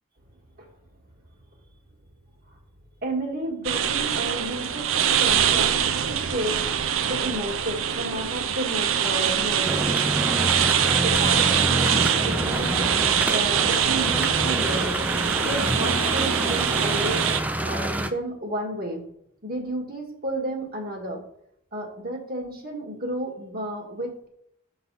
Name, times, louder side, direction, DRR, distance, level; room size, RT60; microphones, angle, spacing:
voice 1, 3.0-5.8 6.1-6.5 7.1-9.9 11.0-12.8 13.2-14.9 15.4-17.2 17.6-19.0 19.4-21.2 21.7-24.3, right 1 dB, 50° right, 0 dB, 1.7 m, -32 dB
sound 1, 3.6-17.4, right 8 dB, 80° right, 0.5 m, -24 dB
sound 2, 9.7-18.1, right 1 dB, 10° right, 0.4 m, -27 dB
7.0 x 4.0 x 5.4 m, 0.70 s
head